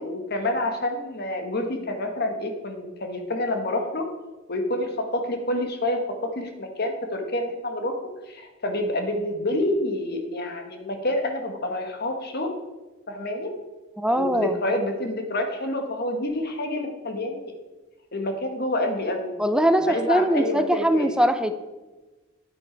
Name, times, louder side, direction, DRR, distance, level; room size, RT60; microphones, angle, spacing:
voice 1, 0.0-4.1 4.5-12.5 13.1-13.5 14.1-17.5 18.1-19.3 19.9-21.2, left 1 dB, 50° left, 4 dB, 1.5 m, -28 dB
voice 2, 14.0-14.6 19.4-21.6, right 1 dB, 5° right, 9 dB, 0.5 m, -21 dB
9.8 x 8.9 x 4.6 m, 1.2 s
head